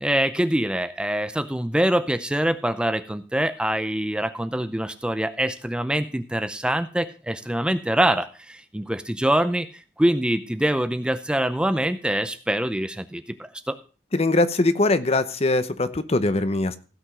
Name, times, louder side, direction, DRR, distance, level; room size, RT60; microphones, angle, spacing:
voice 1, 0.0-9.7 10.0-13.4 13.7-13.8, right 1 dB, 5° right, 11 dB, 0.5 m, -24 dB
voice 2, 14.1-16.8, left 2 dB, 35° left, 12 dB, 0.8 m, -22 dB
16.0 x 5.5 x 6.1 m, 0.36 s
head